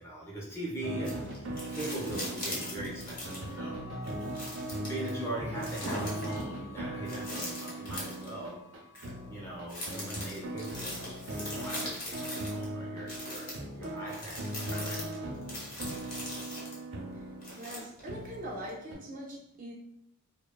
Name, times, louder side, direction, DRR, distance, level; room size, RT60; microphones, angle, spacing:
voice 1, 0.0-4.0 4.3-8.7 9.2-15.1 15.6-15.7, right 1 dB, 10° left, -4 dB, 0.6 m, -41 dB
sound 1, 0.8-18.9, right 1 dB, 85° right, 0.7 m, -39 dB
sound 2, 1.0-3.6 4.0-5.1 5.6-6.4 7.1-8.3 8.9-9.1 9.7-12.6 13.1-16.8 17.4-18.1 18.7-18.8, left 1 dB, 40° left, 0.8 m, -40 dB
Chime / Clock, 1.7-12.6, left 3 dB, 70° left, 0.6 m, -52 dB
voice 2, 17.6-19.7, right 1 dB, 40° right, -2 dB, 0.4 m, -42 dB
2.9 x 2.1 x 2.2 m, 0.75 s
head